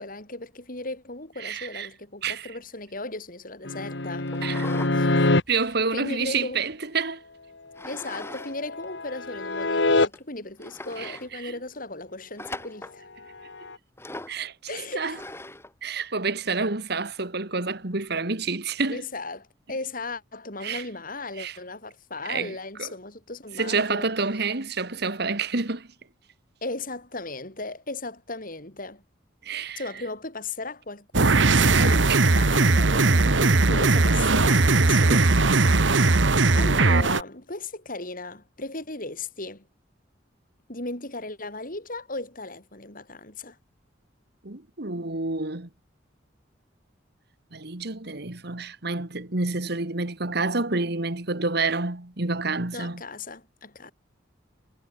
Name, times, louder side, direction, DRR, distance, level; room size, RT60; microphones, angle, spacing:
voice 1, 0.0-4.3 4.9-6.6 7.9-13.1 14.7-15.2 18.8-24.1 26.6-29.0 29.8-35.5 36.5-39.7 40.7-43.6 52.7-53.9, left 2 dB, 45° left, 7.0 m, -36 dB
voice 2, 1.4-1.9 2.2-2.5 4.4-4.7 5.5-7.2 11.0-11.5 14.3-15.2 15.8-19.0 20.6-20.8 21.4-21.6 22.3-22.5 22.8-22.9 23.6-25.9 29.4-29.8 32.1-32.2 35.1-35.2 44.4-45.7 47.5-53.0, right 4 dB, 60° right, 2.1 m, -28 dB
sound 1, 3.6-5.4 8.1-10.1 13.5-13.7, left 2 dB, 65° left, 1.8 m, -25 dB
sound 2, 4.3-5.0 5.4-6.7 7.8-8.6 8.8-8.9 9.6-9.7 10.1-10.2 10.6-11.3 12.4-13.0 14.0-14.4 15.1-15.7, left 2 dB, 15° left, 3.8 m, -40 dB
sound 3, 31.1-37.2, right 3 dB, 80° right, 1.4 m, -19 dB
head